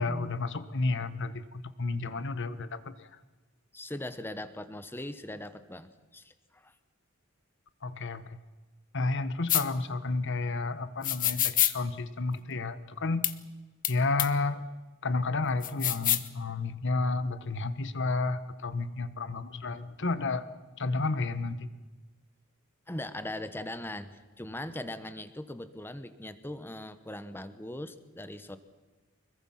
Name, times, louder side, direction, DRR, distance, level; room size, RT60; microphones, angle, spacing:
voice 1, 0.0-3.1 7.8-8.4 8.9-13.3 13.9-14.7 15.0-20.5 20.8-21.7, left 3 dB, 60° left, 13 dB, 1.2 m, -31 dB
voice 2, 3.7-6.7 20.0-20.3 22.9-28.6, left 1 dB, 10° left, 11 dB, 1.1 m, -40 dB
Afuche-Cabasa, 9.5-9.6 11.0-11.7 13.2-13.3 13.8-13.9 14.2-14.3 15.6-16.3, left 12 dB, 40° left, 1.0 m, -26 dB
25.0 x 22.5 x 5.8 m, 1.3 s
head